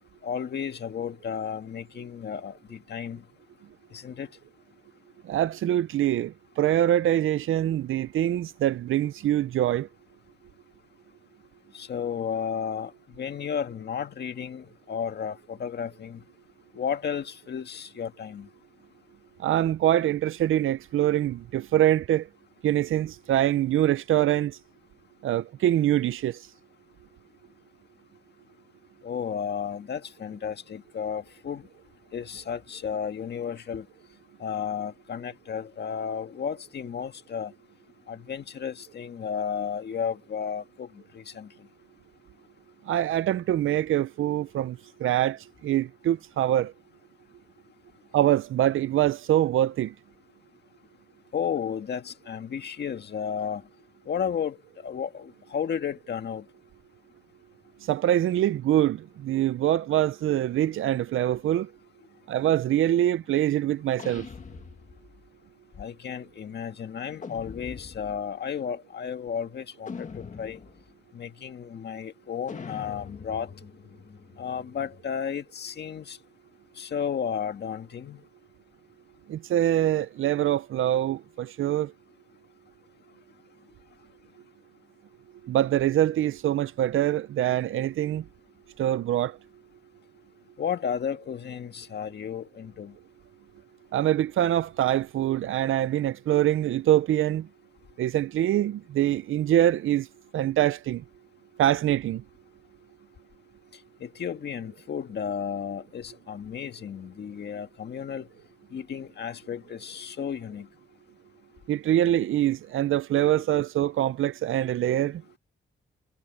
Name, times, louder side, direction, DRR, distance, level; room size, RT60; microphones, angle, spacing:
voice 1, 0.2-3.2 3.9-4.3 11.7-16.2 16.7-18.5 29.0-31.7 32.1-33.9 34.4-37.5 38.1-41.5 51.3-53.6 54.1-54.6 54.8-56.4 65.8-70.6 71.1-73.5 74.4-76.2 76.8-78.2 90.6-92.9 104.0-108.3 108.7-110.7, left 7 dB, 55° left, 1.8 m, -33 dB
voice 2, 5.3-9.9 19.4-22.3 22.6-24.6 25.2-26.5 42.9-46.7 48.1-49.9 57.8-61.7 62.3-64.3 79.3-81.9 85.4-88.2 88.8-89.4 93.9-97.5 98.0-100.1 100.3-101.0 101.6-102.2 111.7-115.2, right 12 dB, 90° right, 0.5 m, -24 dB
sound 1, 64.0-65.3 67.2-68.3 69.9-70.9 72.5-75.2, left 5 dB, 40° left, 1.9 m, -43 dB
wide cardioid pair, 160°, 20 cm